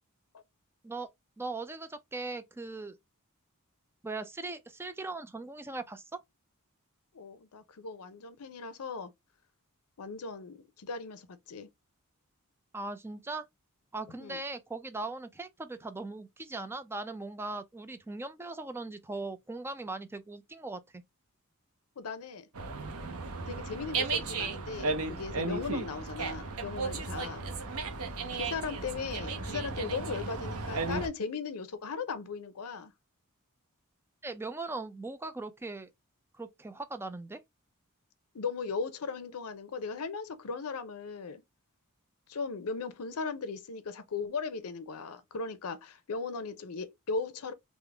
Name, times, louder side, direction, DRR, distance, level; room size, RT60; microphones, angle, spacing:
voice 1, 1.4-3.0 4.0-6.2 12.7-13.5 13.9-21.0 34.2-35.9 36.3-37.4, right 3 dB, 10° right, 0.4 m, -39 dB
voice 2, 7.1-9.1 10.0-11.7 14.2-14.4 22.0-22.5 23.5-27.5 28.3-32.9 38.3-41.4 42.3-47.5, left 4 dB, 80° left, 0.6 m, -37 dB
Dog, 22.5-31.1, right 3 dB, 80° right, 0.7 m, -35 dB
3.6 x 2.0 x 3.3 m
head